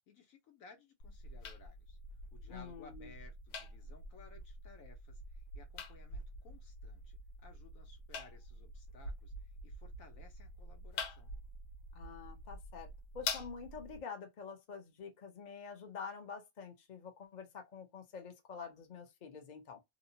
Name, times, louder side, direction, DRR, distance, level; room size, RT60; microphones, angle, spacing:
voice 1, 0.0-11.3, left 4 dB, 70° left, 1.1 m, -60 dB
sound 1, 1.0-14.0, left 2 dB, 85° left, 1.2 m, -46 dB
voice 2, 2.5-3.1 11.9-12.9 13.1-19.8, left 6 dB, 45° left, 0.6 m, -47 dB
2.8 x 2.1 x 2.6 m
omnidirectional pair, 1.6 m